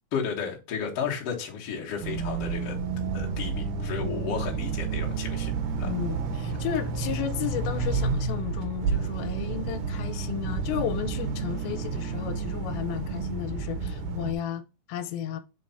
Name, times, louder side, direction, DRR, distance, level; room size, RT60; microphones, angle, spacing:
voice 1, 0.1-2.8 3.1-5.9, left 7 dB, 55° left, 1.9 m, -33 dB
sound 1, 2.0-14.3, right 4 dB, 70° right, 2.2 m, -30 dB
voice 2, 5.7-14.6 14.9-15.4, left 10 dB, 85° left, 2.5 m, -33 dB
5.0 x 4.6 x 4.1 m
omnidirectional pair, 4.2 m